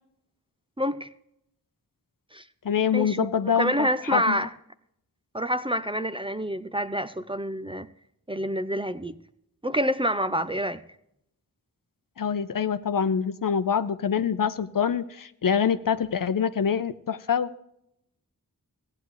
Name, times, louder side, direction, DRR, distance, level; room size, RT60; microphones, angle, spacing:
voice 1, 0.8-1.1 2.3-2.4 2.9-4.5 5.3-7.9 8.3-9.2 9.6-10.8, equal, 15° right, 12 dB, 0.6 m, -27 dB
voice 2, 2.6-4.4 12.2-17.5, left 7 dB, 60° left, 12 dB, 0.7 m, -25 dB
15.5 x 9.6 x 3.2 m, 0.77 s
cardioid pair, 45°, 37 cm